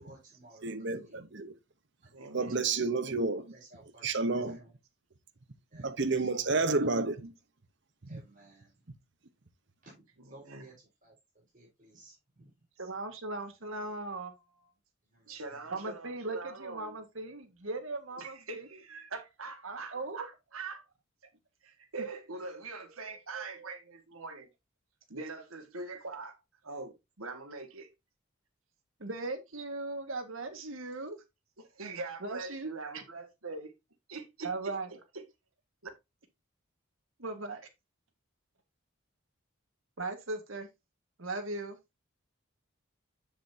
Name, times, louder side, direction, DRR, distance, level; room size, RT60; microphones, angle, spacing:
voice 1, 0.0-0.8 1.0-1.2 2.0-2.7 3.5-4.7 5.7-6.3 8.1-8.8 9.8-12.6 15.1-15.4, right 2 dB, 40° right, 4.6 m, -57 dB
voice 2, 0.6-1.6 2.3-3.5 4.0-4.6 5.7-7.3 8.0-8.2, right 3 dB, 55° right, 1.0 m, -30 dB
voice 3, 2.1-2.6 10.3-10.7 15.3-17.0 18.2-20.8 21.6-24.5 25.1-26.4 26.6-27.9 31.6-33.7 34.1-34.8 35.1-35.3, right 3 dB, 90° right, 1.9 m, -43 dB
voice 4, 12.8-14.4 15.7-18.7 19.6-20.2 23.3-23.7 29.0-31.2 32.2-33.0 34.4-34.9 37.2-37.6 40.0-40.7 41.2-41.8, right 2 dB, 75° right, 1.8 m, -38 dB
7.7 x 7.2 x 2.8 m
head